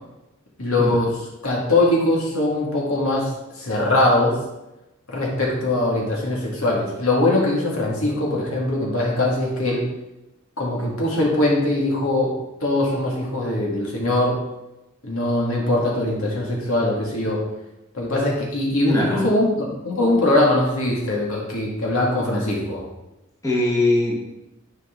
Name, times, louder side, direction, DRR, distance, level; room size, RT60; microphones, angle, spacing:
voice 1, 0.6-1.2 1.4-4.4 5.1-9.9 10.6-12.3 12.6-14.4 15.0-17.4 17.9-22.8, left 1 dB, 85° left, -3 dB, 2.2 m, -21 dB
voice 2, 18.9-19.3 23.4-24.2, left 1 dB, 15° left, -4 dB, 1.4 m, -21 dB
10.5 x 4.6 x 3.8 m, 0.95 s
head